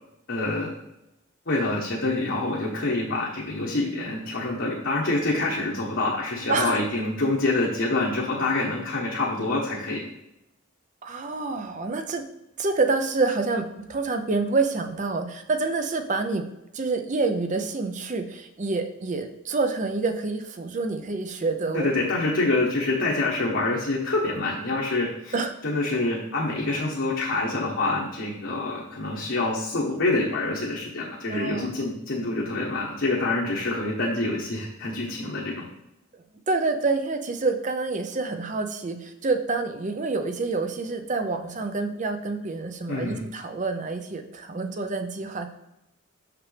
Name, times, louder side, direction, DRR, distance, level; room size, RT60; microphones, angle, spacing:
voice 1, 0.3-0.7 1.5-10.0 21.7-25.3 25.6-35.7 42.9-43.2, left 2 dB, 60° left, -4 dB, 1.1 m, -26 dB
voice 2, 6.5-6.8 11.0-12.2 12.6-16.4 16.7-21.9 25.3-25.5 31.3-31.7 36.5-45.5, right 3 dB, 35° right, 7 dB, 0.6 m, -27 dB
6.4 x 5.9 x 3.3 m, 0.88 s
head